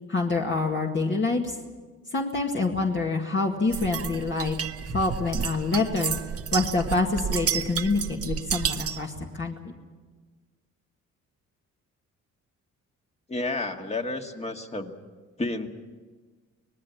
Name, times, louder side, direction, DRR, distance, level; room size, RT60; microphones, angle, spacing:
voice 1, 0.1-1.6 2.1-4.6 4.9-6.1 6.5-9.5, left 3 dB, 40° left, 0 dB, 2.2 m, -26 dB
sound 1, 3.7-9.1, right 8 dB, 50° right, 1.1 m, -31 dB
voice 2, 13.3-14.9 15.4-15.7, left 2 dB, 20° left, 4 dB, 2.0 m, -31 dB
25.0 x 19.0 x 7.2 m, 1.4 s
cardioid pair, 90°, 30 cm